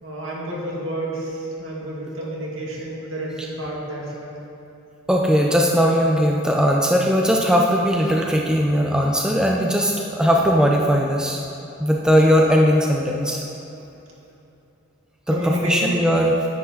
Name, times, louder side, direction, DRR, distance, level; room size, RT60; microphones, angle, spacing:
voice 1, 0.0-4.4 15.3-15.9, equal, 65° right, -4 dB, 2.4 m, -29 dB
voice 2, 5.1-11.4 11.8-13.4 15.3-16.3, equal, 5° right, -1 dB, 0.6 m, -19 dB
10.0 x 9.8 x 4.0 m, 2.9 s
head